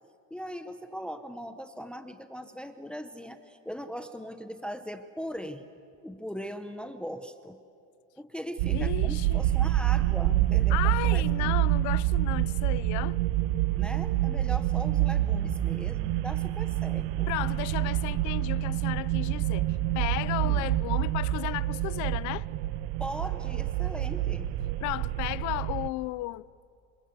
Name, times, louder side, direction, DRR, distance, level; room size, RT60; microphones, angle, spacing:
voice 1, 0.3-5.7 6.0-7.6 8.2-11.5 13.8-17.3 20.4-20.6 23.0-24.5, equal, 5° left, 0.8 m, -40 dB
sound 1, 8.6-25.9, right 15 dB, 85° right, 0.8 m, -27 dB
voice 2, 8.7-9.4 10.7-13.2 17.3-22.5 24.8-26.5, left 19 dB, 60° left, 0.6 m, -34 dB
27.5 x 26.5 x 8.1 m
cardioid pair, 165°, 33 cm